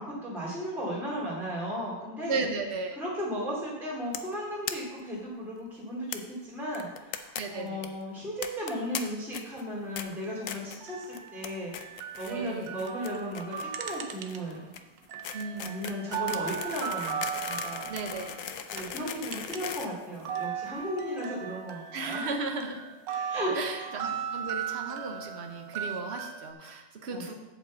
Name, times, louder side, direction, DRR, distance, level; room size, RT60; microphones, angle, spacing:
voice 1, 0.0-2.4 2.9-11.7 12.2-14.6 15.6-17.9 18.7-22.2 23.3-23.9 27.1-27.3, equal, ahead, -6 dB, 2.4 m, -35 dB
voice 2, 2.3-3.0 7.4-7.9 12.3-12.8 15.3-15.8 17.9-18.3 21.9-22.8 23.5-27.3, right 3 dB, 45° right, 4 dB, 1.0 m, -35 dB
sound 1, 4.1-4.3 4.7-4.8 5.0-5.1 5.3-5.4 6.1-6.2 6.7-7.4 7.7-7.9 8.4-9.0 9.3-9.6 10.0-10.1 10.5-10.8 11.1-11.5 11.7-12.3 12.6-20.7, left 8 dB, 70° left, 0.7 m, -38 dB
sound 2, 10.1-14.7 15.0-19.8 20.1-26.5, right 8 dB, 70° right, 1.4 m, -37 dB
8.3 x 5.4 x 7.4 m, 1.1 s
omnidirectional pair, 2.1 m